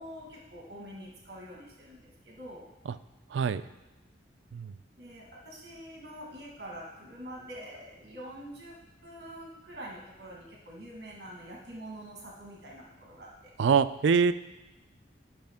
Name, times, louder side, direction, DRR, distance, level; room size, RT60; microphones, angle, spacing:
voice 1, 0.0-2.7 5.0-8.8 9.0-13.5, equal, 60° right, -2 dB, 1.5 m, -45 dB
voice 2, 3.3-3.6 4.5-4.7 13.6-14.3, right 6 dB, 85° right, 13 dB, 0.4 m, -24 dB
12.0 x 5.8 x 3.5 m, 1.0 s
head